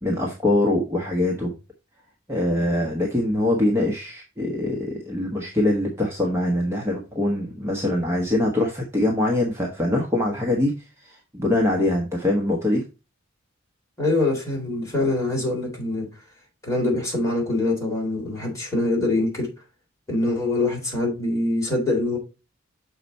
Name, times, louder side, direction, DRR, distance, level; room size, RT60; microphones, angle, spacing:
voice 1, 0.0-1.5 2.3-10.7 11.3-12.8, left 1 dB, 15° right, 1.1 m, -23 dB
voice 2, 14.0-16.1 16.6-19.5 20.1-22.2, left 2 dB, 15° left, 3.3 m, -24 dB
6.7 x 4.9 x 4.1 m
head